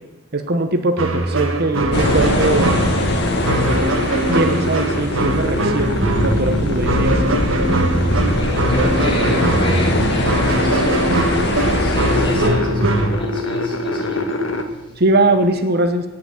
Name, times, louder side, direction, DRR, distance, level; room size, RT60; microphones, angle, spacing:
voice 1, 0.3-2.9 3.5-7.1 15.0-16.0, right 2 dB, 50° right, 8 dB, 1.0 m, -21 dB
sound 1, 1.0-13.1, right 1 dB, 80° right, 1.6 m, -21 dB
sound 2, 1.9-12.5, left 1 dB, 55° left, 1.8 m, -22 dB
sound 3, 2.0-14.6, left 2 dB, 75° left, 1.5 m, -26 dB
voice 2, 8.2-15.0, equal, 25° left, -2 dB, 3.5 m, -30 dB
18.0 x 5.9 x 7.8 m, 1.1 s
head